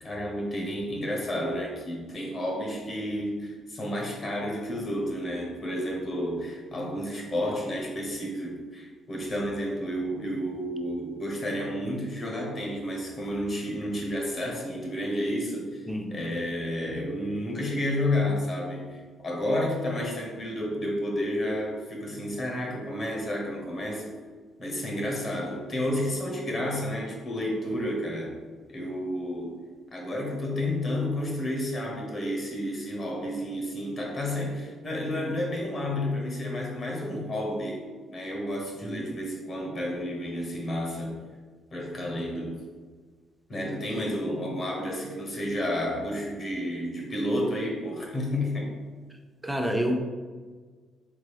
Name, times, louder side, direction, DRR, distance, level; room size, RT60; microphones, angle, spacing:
voice 1, 0.0-15.8 16.1-24.2 24.6-28.4 28.7-29.6 29.9-41.2 41.7-42.6 43.5-48.7, left 1 dB, 45° left, -1 dB, 1.2 m, -31 dB
voice 2, 49.4-50.0, equal, 5° right, 3 dB, 0.6 m, -28 dB
3.8 x 3.7 x 3.3 m, 1.5 s
cardioid pair, 90°, 0 cm